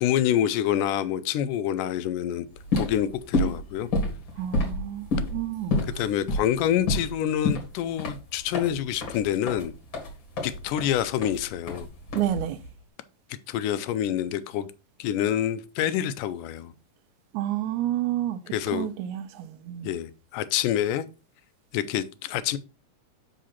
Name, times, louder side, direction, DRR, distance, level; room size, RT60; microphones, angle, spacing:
voice 1, 0.0-2.5 2.8-3.9 6.0-9.7 10.4-11.9 13.5-14.7 15.0-16.7 18.5-18.9 19.8-21.1 21.7-22.6, left 10 dB, 85° left, 2.1 m, -27 dB
sound 1, 2.5-12.7, left 2 dB, 40° left, 2.3 m, -29 dB
voice 2, 4.4-5.8 12.2-12.6 17.3-18.4 18.7-19.9, right 12 dB, 80° right, 1.9 m, -29 dB
6.4 x 5.1 x 4.2 m
omnidirectional pair, 3.7 m